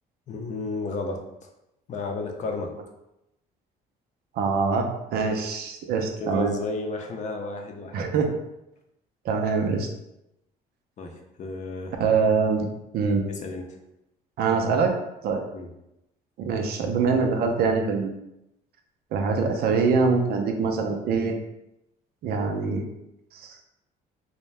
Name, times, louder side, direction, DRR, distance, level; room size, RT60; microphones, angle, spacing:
voice 1, 0.3-1.5 1.9-2.7 6.2-8.0 11.0-12.0 13.3-13.7 15.5-15.7, left 3 dB, 45° left, 3 dB, 0.5 m, -32 dB
voice 2, 4.4-6.5 7.9-8.3 9.2-9.9 12.0-12.7 12.9-13.2 14.4-14.9 15.2-15.4 16.4-18.1 19.1-21.4 22.2-22.9 23.3-23.6, right 5 dB, 65° right, 3 dB, 0.5 m, -24 dB
2.6 x 2.1 x 3.2 m, 0.87 s
cardioid pair, 110°, 17 cm